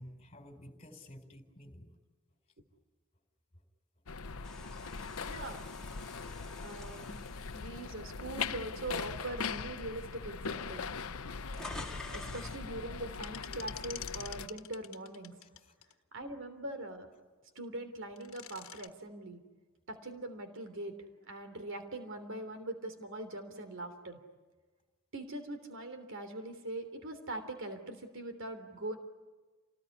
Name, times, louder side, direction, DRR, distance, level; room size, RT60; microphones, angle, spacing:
voice 1, 0.0-2.0 5.3-5.5 7.6-7.9 15.4-15.7, left 1 dB, 30° left, 5 dB, 4.2 m, -53 dB
sound 1, 4.1-14.5, left 5 dB, 85° left, 0.8 m, -41 dB
sound 2, 4.4-8.7 9.2-9.4 10.3-10.4 10.6-12.7, left 2 dB, 5° left, 2.4 m, -48 dB
voice 2, 5.2-5.6 6.6-7.2 7.5-10.8 12.1-15.3 16.1-17.1 17.5-19.4 19.9-21.0 21.2-24.2 25.1-29.0, right 1 dB, 65° right, 8 dB, 3.3 m, -42 dB
sound 3, 13.1-15.9 18.0-18.9, left 12 dB, 70° left, 1.5 m, -46 dB
29.0 x 19.5 x 9.8 m, 1.3 s
head